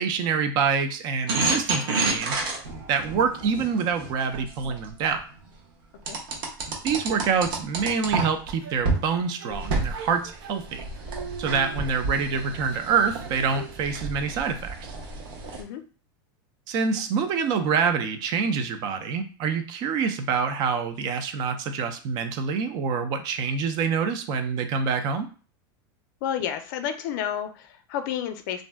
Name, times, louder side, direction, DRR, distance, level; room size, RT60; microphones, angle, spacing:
voice 1, 0.0-2.4 2.9-5.2 6.8-10.8 11.4-14.9 16.7-25.3, right 6 dB, 35° right, 8 dB, 0.4 m, -26 dB
sound 1, 1.3-5.2 6.1-8.5 8.8-9.0 9.5-15.6, right 3 dB, 65° right, 0.9 m, -30 dB
sound 2, 8.6-12.3 12.7-13.8, right 6 dB, 90° right, 0.6 m, -42 dB
voice 2, 26.2-28.6, left 9 dB, 60° left, 8 dB, 0.5 m, -30 dB
2.5 x 2.2 x 3.3 m, 0.37 s
supercardioid pair, 165°, 12 cm